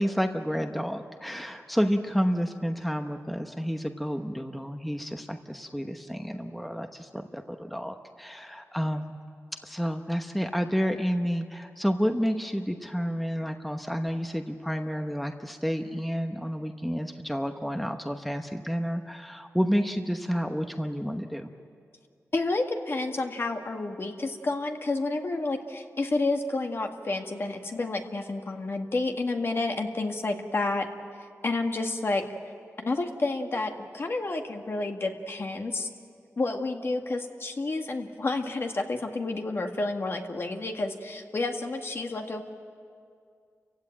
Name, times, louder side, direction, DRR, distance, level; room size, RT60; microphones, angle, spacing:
voice 1, 0.0-9.2 9.6-21.5, equal, ahead, 6 dB, 1.0 m, -30 dB
voice 2, 22.3-30.9 31.4-32.3 32.8-35.9 36.4-42.4, left 2 dB, 50° left, 4 dB, 1.8 m, -30 dB
29.0 x 16.0 x 9.0 m, 2.3 s
wide cardioid pair, 90°, 5 cm